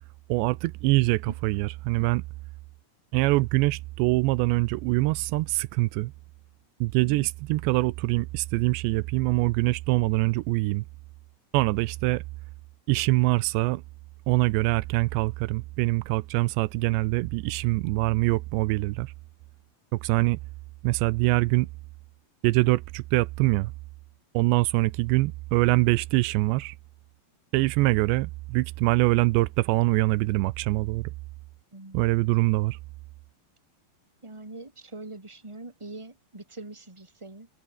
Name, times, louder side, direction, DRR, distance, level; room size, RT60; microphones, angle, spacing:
voice 1, 0.3-2.2 3.1-6.1 6.8-10.9 11.5-12.2 12.9-13.8 14.3-19.1 19.9-20.4 20.8-21.7 22.4-23.7 24.3-26.7 27.5-31.1 31.9-32.8, right 21 dB, 90° right, 2.9 m, -24 dB
voice 2, 31.7-32.0 34.2-37.5, right 2 dB, 5° right, 3.0 m, -43 dB
omnidirectional pair, 5.0 m